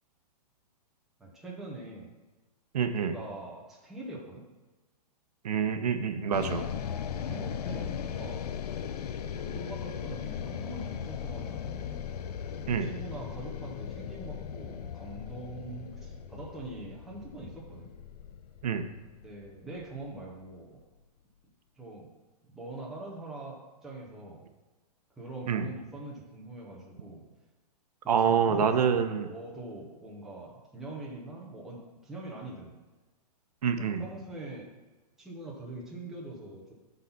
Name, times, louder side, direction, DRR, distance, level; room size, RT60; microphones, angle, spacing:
voice 1, 1.2-2.1 2.9-4.4 7.1-8.4 9.3-12.0 12.8-17.9 19.2-20.8 21.8-22.1 22.4-24.4 25.2-27.2 28.0-32.7 33.8-34.7 35.2-36.7, right 2 dB, ahead, -5 dB, 0.7 m, -43 dB
voice 2, 2.7-3.1 5.4-6.6 12.7-12.9 18.6-18.9 25.5-25.7 28.1-29.3 33.6-34.1, right 7 dB, 75° right, 8 dB, 0.9 m, -26 dB
sound 1, 6.3-20.6, left 8 dB, 70° left, 0.6 m, -38 dB
9.3 x 4.0 x 5.8 m, 1.2 s
hypercardioid pair, 180°, 20 cm